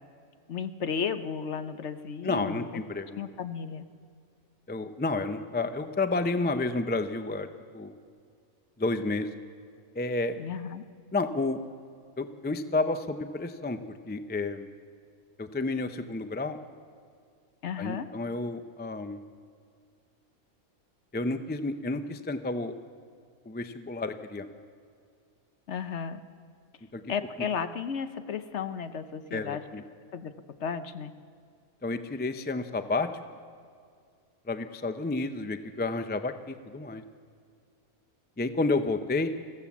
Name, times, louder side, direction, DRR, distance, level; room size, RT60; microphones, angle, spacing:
voice 1, 0.5-2.8 3.2-3.9 10.4-10.8 17.6-18.1 25.7-26.2 27.1-29.6 30.1-30.3 30.6-31.1, left 7 dB, 60° left, 10 dB, 1.1 m, -34 dB
voice 2, 2.2-3.2 4.7-7.5 7.7-7.9 8.8-9.3 9.9-10.4 11.1-11.6 12.2-14.7 15.4-16.6 17.8-19.2 21.1-22.7 23.5-24.5 26.9-27.0 29.3-29.8 31.8-33.1 34.5-37.0 38.4-39.3, left 3 dB, 15° left, 9 dB, 0.4 m, -30 dB
24.5 x 15.5 x 7.2 m, 2.2 s
omnidirectional pair, 1.4 m